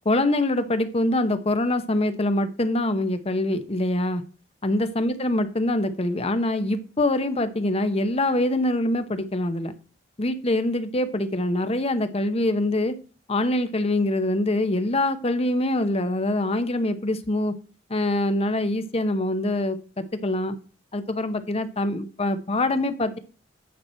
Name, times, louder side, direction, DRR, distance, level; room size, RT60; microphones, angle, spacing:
voice 1, 0.1-4.2 4.6-9.7 10.2-12.9 13.3-17.5 17.9-19.8 20.2-20.6 20.9-23.2, left 1 dB, 35° left, 0.9 m, -24 dB
9.5 x 6.1 x 4.3 m
head